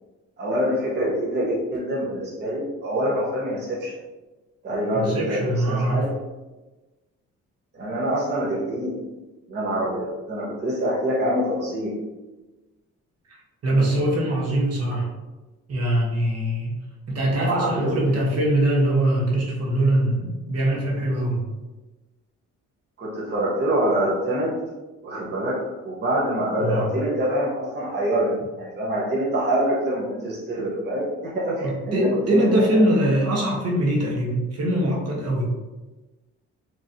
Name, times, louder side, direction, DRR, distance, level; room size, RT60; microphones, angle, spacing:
voice 1, 0.4-4.0 4.6-6.2 7.7-9.0 9.5-12.0 17.4-18.3 23.0-24.6 25.0-32.5, right 1 dB, 35° right, -5 dB, 0.9 m, -25 dB
voice 2, 4.9-6.1 13.3-13.4 13.6-15.1 15.7-16.7 17.1-21.4 26.6-26.9 31.6-35.5, right 1 dB, 55° right, -3 dB, 1.1 m, -22 dB
3.9 x 3.1 x 2.6 m, 1.1 s
cardioid pair, 90°, 30 cm